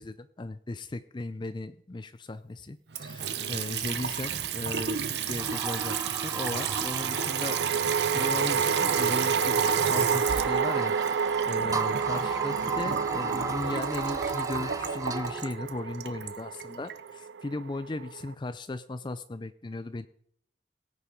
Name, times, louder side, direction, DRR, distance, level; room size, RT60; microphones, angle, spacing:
voice 1, 0.0-7.6 8.1-11.0 11.4-20.1, left 2 dB, 25° left, 13 dB, 0.4 m, -37 dB
Water tap faucet / Sink (filling or washing) / Trickle dribble, 2.9-17.0, right 7 dB, 65° right, 0.8 m, -33 dB
sound 1, 4.0-4.1 7.0-18.3, right 6 dB, 85° right, 0.4 m, -30 dB
sound 2, 5.4-15.5, right 4 dB, 20° right, 0.7 m, -36 dB
17.5 x 8.3 x 5.1 m, 0.66 s
head